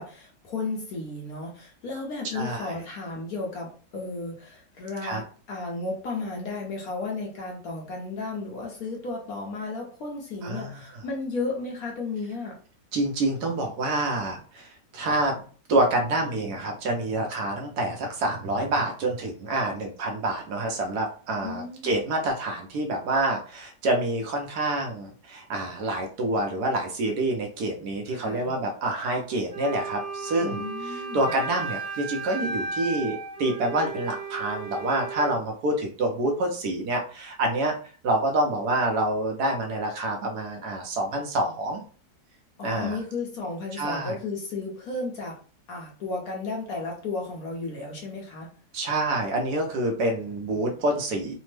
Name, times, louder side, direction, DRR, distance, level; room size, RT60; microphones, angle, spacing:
voice 1, 0.0-12.6 21.4-22.0 28.1-28.5 30.4-31.3 42.6-45.4 45.7-48.5, left 3 dB, 60° left, -1 dB, 1.1 m, -34 dB
voice 2, 2.3-2.7 5.0-5.2 10.4-10.8 12.9-15.4 15.7-37.8 38.0-41.8 42.6-43.0 43.8-44.2 48.7-51.3, right 2 dB, 70° right, 2 dB, 1.1 m, -27 dB
Wind instrument woodwind instrument, 29.5-35.4, right 4 dB, 55° right, 0.5 m, -35 dB
3.4 x 2.0 x 3.1 m, 0.41 s
omnidirectional pair, 2.0 m